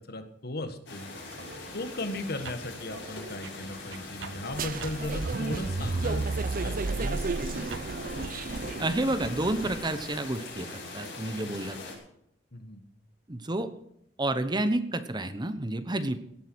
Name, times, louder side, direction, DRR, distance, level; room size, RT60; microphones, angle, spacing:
voice 1, 0.1-1.1 1.7-6.3 6.6-7.3 11.4-11.6 12.5-12.8, left 2 dB, 60° left, 8 dB, 1.6 m, -36 dB
sound 1, 0.9-12.0, left 3 dB, 80° left, 6.0 m, -42 dB
sound 2, 1.3-8.6, right 3 dB, 80° right, 0.9 m, -46 dB
sound 3, 4.5-10.1, right 3 dB, 50° right, 0.6 m, -32 dB
voice 2, 8.8-10.7 10.9-11.8 13.3-13.7 14.2-16.2, right 1 dB, 25° right, 11 dB, 1.0 m, -29 dB
16.5 x 9.5 x 6.3 m, 0.73 s
head